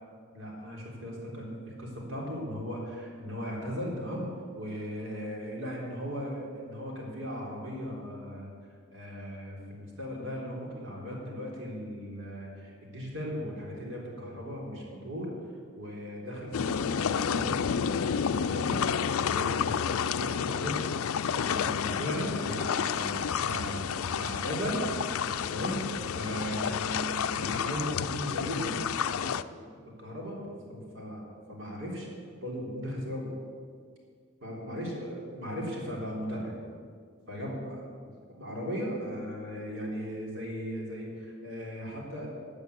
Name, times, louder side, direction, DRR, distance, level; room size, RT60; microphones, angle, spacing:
voice 1, 0.3-4.3 4.5-8.5 8.9-15.3 15.7-20.9 21.3-24.9 25.5-25.8 26.1-28.9 29.2-29.6 30.0-32.1 32.4-33.4 34.4-36.6 37.3-37.8 38.4-42.3, equal, 60° right, -2 dB, 3.6 m, -37 dB
sound 1, 16.5-29.4, left 7 dB, 80° left, 0.4 m, -30 dB
13.5 x 8.1 x 8.2 m, 2.1 s
head